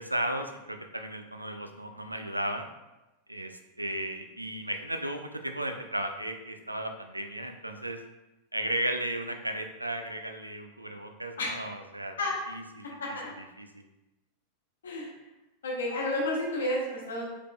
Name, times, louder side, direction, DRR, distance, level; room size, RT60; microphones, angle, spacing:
voice 1, 0.0-2.7 3.3-8.0 8.5-12.2 12.5-12.9 13.6-13.8, right 1 dB, 85° right, 6 dB, 0.3 m, -35 dB
voice 2, 15.6-17.2, left 1 dB, 65° left, -3 dB, 1.1 m, -31 dB
4.7 x 3.5 x 2.2 m, 1.0 s
figure-of-eight pair, 90°, 0 cm